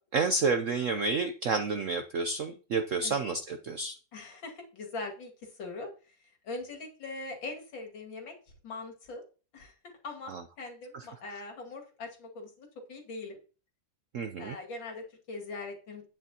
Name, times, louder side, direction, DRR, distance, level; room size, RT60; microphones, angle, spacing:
voice 1, 0.1-3.9 10.3-10.4 14.1-14.6, right 4 dB, 65° right, 7 dB, 0.7 m, -30 dB
voice 2, 4.1-8.3 8.6-9.2 9.5-13.4 14.4-16.1, left 3 dB, 75° left, 2 dB, 2.9 m, -42 dB
11.0 x 9.2 x 2.9 m, 0.36 s
omnidirectional pair, 2.1 m